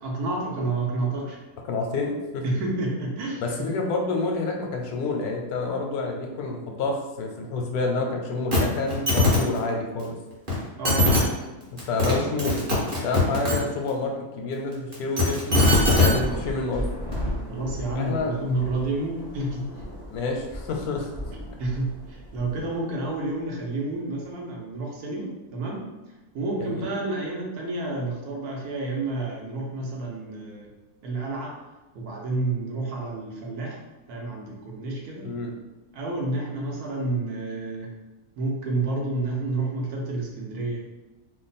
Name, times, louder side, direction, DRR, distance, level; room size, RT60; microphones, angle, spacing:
voice 1, 0.0-1.4 2.4-3.7 10.8-11.1 17.5-19.7 21.6-25.8 26.3-30.7 31.0-31.6 31.9-33.8 34.1-35.3 35.9-37.9 38.4-40.8, right 2 dB, 85° right, -2 dB, 1.3 m, -29 dB
voice 2, 1.7-2.4 3.4-10.2 11.7-12.6 13.0-15.7 16.0-16.9 17.9-18.4 20.1-21.1 22.6-22.7 26.6-26.8 35.2-35.6, left 3 dB, 85° left, 2 dB, 1.1 m, -28 dB
sound 1, 8.5-8.6 8.9-9.4 10.5-10.6 10.8-11.2 11.8-12.1 12.4-13.5 14.9-16.1 17.1-17.2, left 2 dB, 40° right, 1.2 m, -20 dB
Thunder / Rain, 15.5-23.1, equal, 25° left, 0.5 m, -34 dB
3.1 x 2.2 x 4.0 m, 1.1 s
omnidirectional pair, 1.6 m